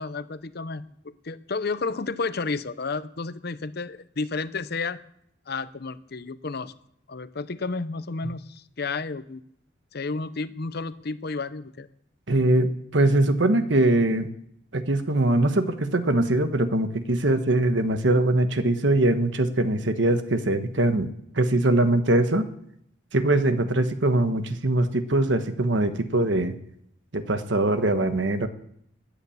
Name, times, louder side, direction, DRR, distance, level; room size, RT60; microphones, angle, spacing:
voice 1, 0.0-5.0 5.5-6.7 7.1-9.4 9.9-11.9, left 4 dB, 55° left, 14 dB, 0.8 m, -31 dB
voice 2, 12.3-14.3 14.7-21.1 21.3-22.5 23.1-26.5 27.1-28.5, right 2 dB, 70° right, 9 dB, 1.3 m, -22 dB
16.0 x 10.5 x 7.1 m, 0.73 s
head